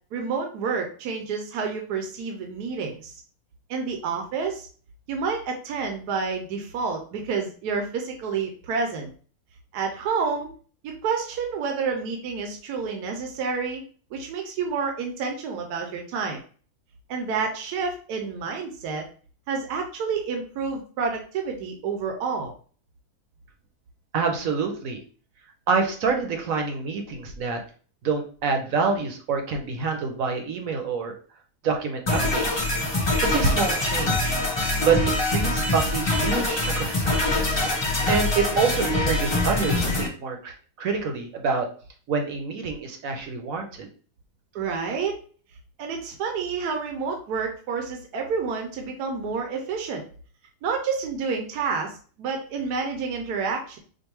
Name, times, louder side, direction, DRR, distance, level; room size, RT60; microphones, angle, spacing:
voice 1, 0.1-3.2 3.7-4.7 5.1-9.1 9.7-10.5 10.8-13.8 14.1-16.4 17.1-19.0 19.5-22.5 44.5-45.2 45.8-50.0 50.6-53.8, right 5 dB, 80° right, 3 dB, 1.2 m, -29 dB
voice 2, 24.1-25.0 25.7-27.6 28.0-31.1 31.6-32.6 33.2-34.4 34.8-37.3 38.1-41.7 42.1-43.9, right 5 dB, 65° right, 3 dB, 1.1 m, -26 dB
sound 1, 32.1-40.1, left 2 dB, 30° left, 0.4 m, -24 dB
4.5 x 2.6 x 3.0 m, 0.41 s
omnidirectional pair, 1.7 m